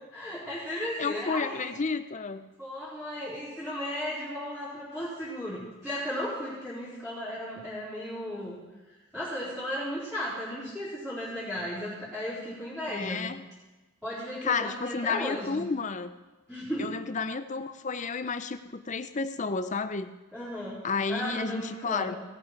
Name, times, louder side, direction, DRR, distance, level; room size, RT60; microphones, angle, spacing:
voice 1, 0.1-1.7 2.6-8.6 9.1-13.3 14.0-15.6 16.5-16.9 20.3-20.8 21.1-22.2, equal, ahead, -14 dB, 4.2 m, -35 dB
voice 2, 0.7-2.5 12.9-13.4 14.4-16.1 16.8-20.1 20.8-22.2, left 4 dB, 35° left, 11 dB, 0.5 m, -31 dB
17.5 x 8.6 x 4.7 m, 1.2 s
head